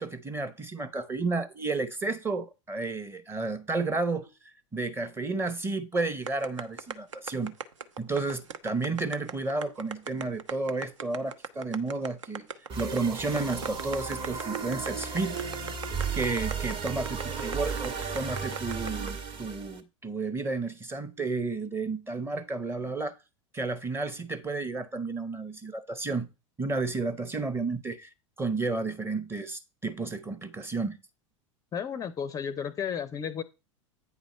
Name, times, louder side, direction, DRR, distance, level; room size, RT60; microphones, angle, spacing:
voice 1, 0.0-4.3 4.7-7.5 8.0-12.5 12.8-15.4 16.1-23.2 23.5-26.3 26.6-28.1 28.4-31.0, right 3 dB, 15° right, 0.8 m, -32 dB
sound 1, 6.3-19.1, right 6 dB, 70° right, 0.7 m, -38 dB
sound 2, 12.7-19.8, right 5 dB, 30° right, 1.1 m, -34 dB
voice 2, 31.7-33.4, left 7 dB, 20° left, 0.5 m, -33 dB
8.9 x 4.0 x 5.3 m
figure-of-eight pair, 85°, 16 cm